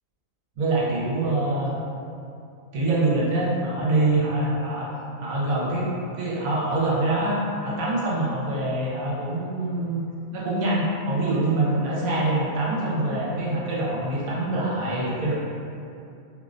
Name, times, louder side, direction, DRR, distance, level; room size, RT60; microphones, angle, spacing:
voice 1, 0.6-1.7 2.7-4.9 5.2-5.9 6.1-10.0 10.3-15.3, right 2 dB, 80° right, -6 dB, 1.0 m, -25 dB
2.5 x 2.1 x 2.4 m, 2.5 s
omnidirectional pair, 1.5 m